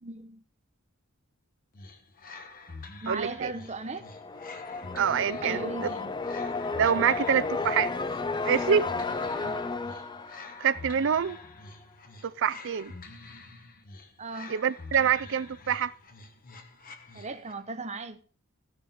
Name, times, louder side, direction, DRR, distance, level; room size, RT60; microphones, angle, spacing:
voice 1, 0.0-0.4 3.0-4.1 5.4-6.1 9.4-9.6 14.2-14.6 17.1-18.2, right 3 dB, 30° right, 0.8 m, -37 dB
sound 1, 1.7-17.7, left 3 dB, 40° left, 1.2 m, -47 dB
voice 2, 3.1-3.5 4.9-5.9 6.8-7.9 8.5-8.9 10.6-11.4 12.2-12.9 14.5-15.9, right 7 dB, 55° right, 0.5 m, -26 dB
sound 2, 3.7-11.5, left 3 dB, 20° left, 0.5 m, -33 dB
15.0 x 6.5 x 4.3 m
head